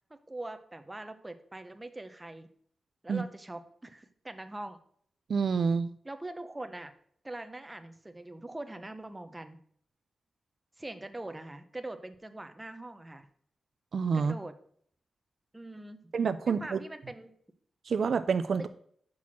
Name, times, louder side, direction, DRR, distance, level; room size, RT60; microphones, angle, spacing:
voice 1, 0.1-2.5 3.0-4.8 6.0-6.9 7.2-9.6 10.8-13.3 14.1-14.6 15.5-16.1 16.5-17.3 18.6-18.7, right 2 dB, 15° right, 8 dB, 0.6 m, -42 dB
voice 2, 5.3-5.9 13.9-14.4 16.1-16.8 17.9-18.7, right 5 dB, 60° right, 11 dB, 0.3 m, -28 dB
6.1 x 5.8 x 6.1 m, 0.62 s
wide cardioid pair, 170°, 0 cm